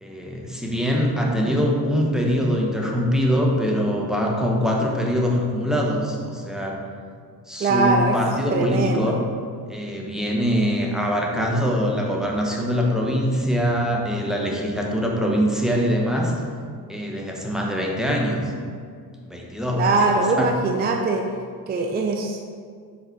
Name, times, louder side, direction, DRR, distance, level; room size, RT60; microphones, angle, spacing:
voice 1, 0.0-6.8 7.5-9.2 9.7-16.3 16.9-18.5 19.2-20.5, equal, ahead, -2 dB, 1.0 m, -23 dB
voice 2, 7.6-8.2 8.5-9.1 19.7-21.2 21.7-22.4, right 3 dB, 25° right, 3 dB, 0.4 m, -21 dB
7.0 x 3.8 x 4.5 m, 2.1 s
cardioid pair, 105°, 39 cm